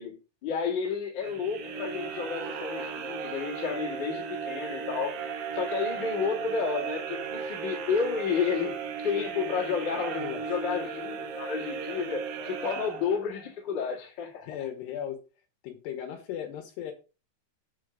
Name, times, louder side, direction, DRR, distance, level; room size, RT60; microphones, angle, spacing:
voice 1, 0.0-5.2 5.5-8.7 9.0-14.5, left 6 dB, 40° left, 1.7 m, -31 dB
sound 1, 1.2-13.5, right 6 dB, 65° right, 2.4 m, -36 dB
voice 2, 14.4-15.2 15.6-16.9, left 9 dB, 75° left, 2.9 m, -37 dB
8.8 x 4.6 x 5.1 m
omnidirectional pair, 5.4 m